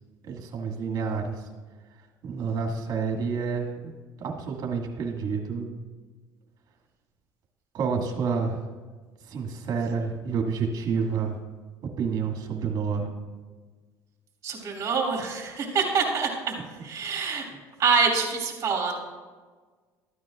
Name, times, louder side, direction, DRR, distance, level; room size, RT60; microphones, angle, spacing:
voice 1, 0.2-1.5 2.2-3.7 4.2-5.7 7.7-8.7 9.2-11.4 12.0-13.1, right 5 dB, 55° right, 1 dB, 2.0 m, -29 dB
voice 2, 14.4-16.5 16.8-17.4 17.8-19.0, right 5 dB, 35° right, -2 dB, 3.0 m, -25 dB
13.5 x 9.4 x 2.5 m, 1.4 s
supercardioid pair, 105°, 8 cm